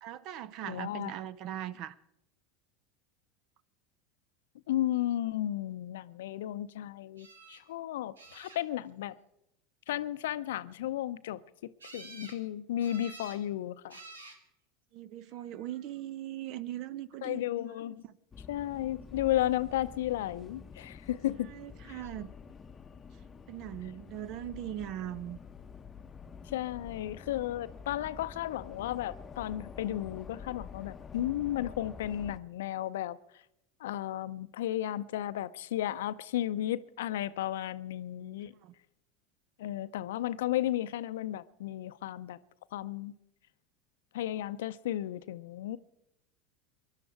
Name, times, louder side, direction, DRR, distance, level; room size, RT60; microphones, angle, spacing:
voice 1, 0.0-2.0 14.9-17.4 18.0-18.2 21.5-22.3 23.5-25.4 38.2-38.7, right 12 dB, 55° right, 0.7 m, -40 dB
voice 2, 0.6-1.1 4.7-9.2 9.9-14.0 17.2-18.0 18.5-21.5 21.9-22.0 26.5-33.2 33.8-38.5 39.6-42.4 42.7-43.1 44.1-45.8, left 13 dB, 70° left, 0.6 m, -34 dB
sound 1, 7.2-7.6 8.2-8.9 11.8-12.4 12.8-13.4 13.9-14.4 15.3-15.8 22.0-22.1 22.5-22.6, right 3 dB, 85° right, 1.7 m, -50 dB
sound 2, 18.3-32.4, left 6 dB, 25° left, 0.8 m, -48 dB
23.0 x 11.5 x 4.7 m
hypercardioid pair, 80°, 0 cm